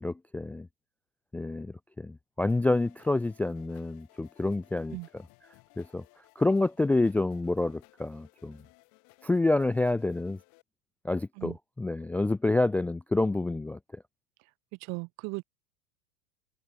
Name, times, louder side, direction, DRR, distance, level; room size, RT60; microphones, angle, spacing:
voice 1, 0.0-0.7 1.3-5.0 5.8-6.0 6.4-8.6 9.2-10.4 11.0-13.8, left 2 dB, 5° left, 0.3 m, -28 dB
sound 1, 2.5-10.6, left 28 dB, 55° left, 7.8 m, -60 dB
voice 2, 14.8-15.4, right 30 dB, 45° right, 0.8 m, -37 dB
hypercardioid pair, 90°, 36 cm